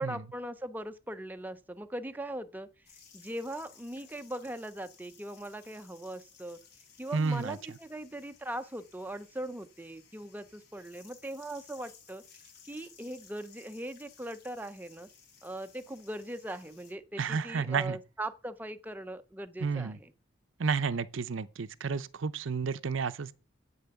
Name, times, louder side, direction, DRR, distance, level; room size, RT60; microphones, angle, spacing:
voice 1, 0.0-2.7 3.1-6.6 7.0-12.2 12.7-15.1 15.4-20.1, right 1 dB, 10° right, 0.5 m, -40 dB
sound 1, 2.9-16.9, left 6 dB, 50° left, 2.9 m, -58 dB
voice 2, 7.1-7.6 17.2-18.0 19.6-20.0 20.6-23.3, right 5 dB, 70° right, 0.6 m, -31 dB
8.5 x 7.0 x 6.8 m
head